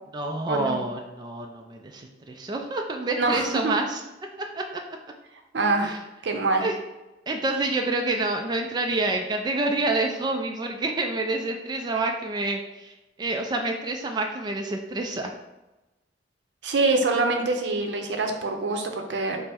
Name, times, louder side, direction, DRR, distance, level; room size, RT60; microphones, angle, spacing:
voice 1, 0.1-4.0 4.5-4.8 5.8-6.0 6.6-6.8 7.3-15.3, right 2 dB, 25° right, 3 dB, 0.3 m, -28 dB
voice 2, 3.2-3.7 5.5-6.6 16.6-19.4, right 3 dB, 80° right, 4 dB, 0.6 m, -25 dB
5.4 x 2.0 x 4.3 m, 1.0 s
head